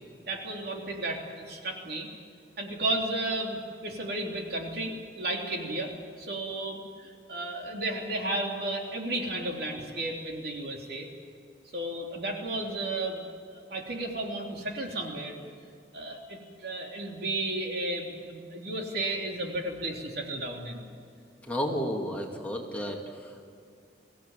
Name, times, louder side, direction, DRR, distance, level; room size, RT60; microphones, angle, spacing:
voice 1, 0.3-2.1 2.6-11.1 11.7-15.3 15.9-20.9, right 2 dB, 60° right, 1 dB, 3.3 m, -33 dB
voice 2, 21.5-23.4, equal, 10° left, -1 dB, 2.5 m, -32 dB
23.5 x 16.5 x 9.1 m, 2.4 s
head